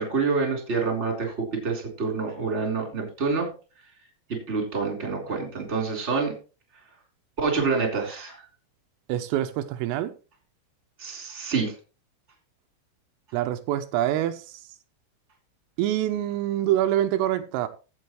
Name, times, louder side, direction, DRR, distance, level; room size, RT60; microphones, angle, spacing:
voice 1, 0.0-3.5 4.3-6.3 7.4-8.4 11.0-11.7, right 4 dB, 15° right, 3.1 m, -27 dB
voice 2, 9.1-10.1 13.3-14.6 15.8-17.7, right 12 dB, 85° right, 3.3 m, -25 dB
16.0 x 7.9 x 3.2 m
omnidirectional pair, 6.0 m